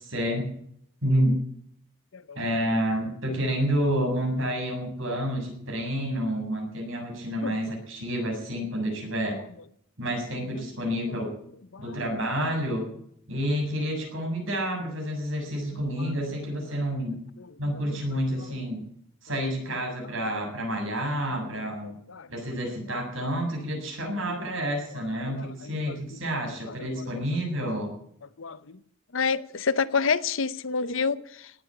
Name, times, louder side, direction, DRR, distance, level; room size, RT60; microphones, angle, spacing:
voice 1, 0.1-0.5 1.0-1.4 2.4-9.4 10.0-11.3 11.8-12.9 13.3-17.2 17.6-18.8 19.2-21.9 22.3-27.9, equal, 65° right, 7.1 m, -29 dB
voice 2, 17.9-18.2 21.8-22.3 24.3-24.4 25.2-26.2 26.7-27.0 28.4-28.8 29.1-31.5, left 5 dB, 65° left, 0.8 m, -30 dB
18.0 x 8.6 x 8.7 m
head